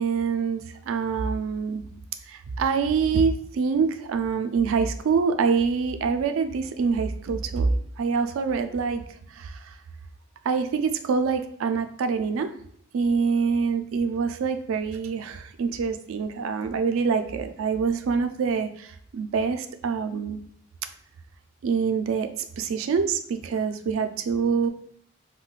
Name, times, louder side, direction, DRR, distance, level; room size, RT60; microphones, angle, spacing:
voice 1, 0.0-1.8 2.3-9.0 9.3-9.7 10.4-12.5 12.9-20.4 21.6-22.3 22.6-24.7, right 5 dB, 70° right, 8 dB, 0.3 m, -25 dB
2.4 x 2.1 x 3.7 m, 0.65 s
head